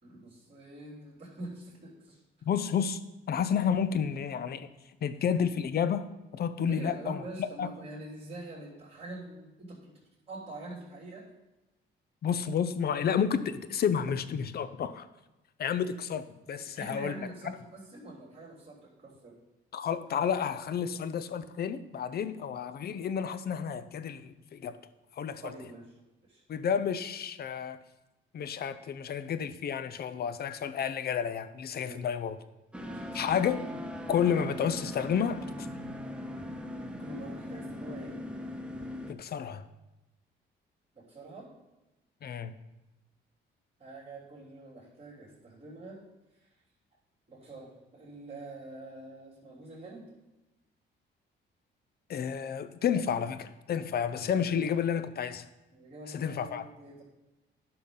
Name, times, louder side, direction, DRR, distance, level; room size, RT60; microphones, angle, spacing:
voice 1, 0.0-2.2 6.7-11.3 16.6-19.3 25.4-25.9 26.2-26.4 31.8-32.0 32.7-33.2 37.0-38.2 40.9-41.5 43.8-46.0 46.4-46.5 47.3-50.1 55.7-57.0, right 2 dB, 30° right, -8 dB, 3.2 m, -45 dB
voice 2, 2.4-3.0 3.3-4.7 5.0-7.7 12.2-15.1 15.6-17.1 19.7-24.8 25.2-25.4 26.5-27.8 28.3-32.4 33.1-33.7 34.1-35.4 39.1-39.6 42.2-42.5 52.1-55.4 56.1-56.6, left 7 dB, 50° left, 12 dB, 0.6 m, -31 dB
sound 1, 32.7-39.1, left 1 dB, 5° right, 0.8 m, -40 dB
10.5 x 5.9 x 3.8 m, 1.0 s
cardioid pair, 90°, 20 cm